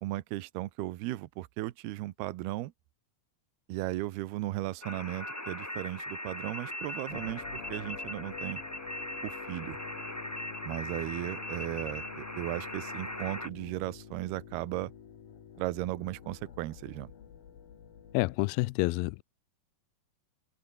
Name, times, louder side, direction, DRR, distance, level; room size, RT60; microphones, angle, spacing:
voice 1, 0.0-2.7 3.7-8.6 9.2-9.8 10.7-14.9 15.6-17.1, right 17 dB, 80° right, 2.9 m, -36 dB
sound 1, 4.8-13.5, left 1 dB, 5° left, 1.7 m, -40 dB
sound 2, 7.1-18.4, left 8 dB, 60° left, 4.7 m, -48 dB
voice 2, 18.1-19.2, left 24 dB, 80° left, 2.3 m, -28 dB
omnidirectional pair, 4.6 m